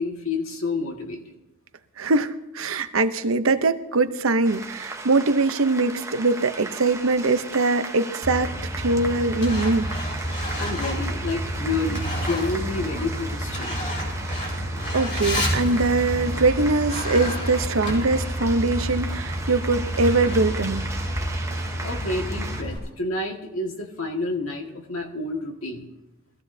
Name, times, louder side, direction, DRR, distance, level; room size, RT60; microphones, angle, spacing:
voice 1, 0.0-1.3 10.6-13.9 21.8-25.9, left 3 dB, 75° left, 2 dB, 1.9 m, -29 dB
voice 2, 2.0-9.9 14.9-20.8, right 3 dB, 70° right, 10 dB, 0.8 m, -22 dB
sound 1, 4.4-22.6, right 3 dB, 15° right, 0.9 m, -37 dB
Truck, 8.2-22.8, equal, 40° left, 5.6 m, -29 dB
22.5 x 15.0 x 2.7 m, 0.98 s
head